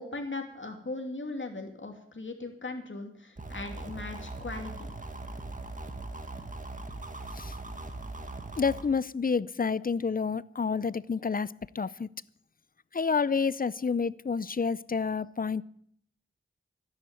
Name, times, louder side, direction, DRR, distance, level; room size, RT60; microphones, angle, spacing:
voice 1, 0.0-4.9, left 2 dB, 65° left, 2.6 m, -38 dB
sound 1, 3.4-8.8, right 2 dB, 40° right, 2.0 m, -40 dB
voice 2, 8.6-12.1 12.9-15.6, left 5 dB, 45° left, 0.5 m, -29 dB
12.5 x 10.5 x 9.0 m
wide cardioid pair, 55°, 21 cm